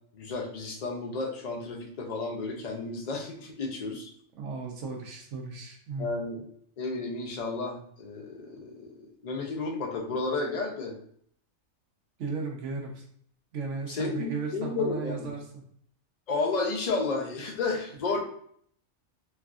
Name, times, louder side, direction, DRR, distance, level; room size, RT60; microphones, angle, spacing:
voice 1, 0.1-4.1 6.0-6.4 6.8-10.9 13.9-15.3 16.3-18.2, left 3 dB, 55° left, 1 dB, 0.4 m, -32 dB
voice 2, 4.4-6.1 12.2-13.0 13.5-15.6 18.1-18.2, right 4 dB, 70° right, 1 dB, 1.0 m, -35 dB
3.3 x 2.3 x 2.4 m, 0.64 s
omnidirectional pair, 1.4 m